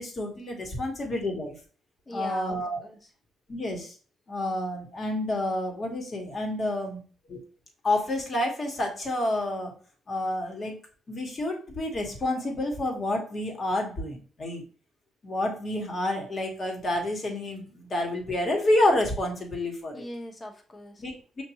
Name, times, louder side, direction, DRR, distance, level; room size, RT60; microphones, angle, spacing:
voice 1, 0.0-1.6 2.1-2.8 3.5-3.9 4.3-7.0 7.3-7.4 7.8-9.7 10.1-10.8 11.1-14.6 15.2-20.1 21.0-21.4, left 1 dB, 45° left, 2 dB, 1.3 m, -29 dB
voice 2, 2.1-3.1 19.9-21.0, equal, 25° left, 2 dB, 1.0 m, -40 dB
6.0 x 2.5 x 2.9 m, 0.39 s
cardioid pair, 90°, 0 cm